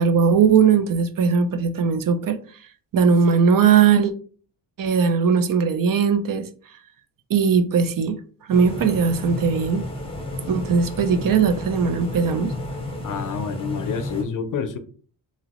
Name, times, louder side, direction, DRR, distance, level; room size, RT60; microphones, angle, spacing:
voice 1, 0.0-2.4 2.9-4.1 4.8-6.5 7.3-8.2 8.5-9.8 10.5-12.5, right 6 dB, 50° right, 0.5 m, -19 dB
sound 1, 8.5-14.2, left 1 dB, 15° left, 0.7 m, -32 dB
voice 2, 13.0-14.8, left 6 dB, 45° left, 0.5 m, -28 dB
2.9 x 2.9 x 2.9 m
wide cardioid pair, 120°, 43 cm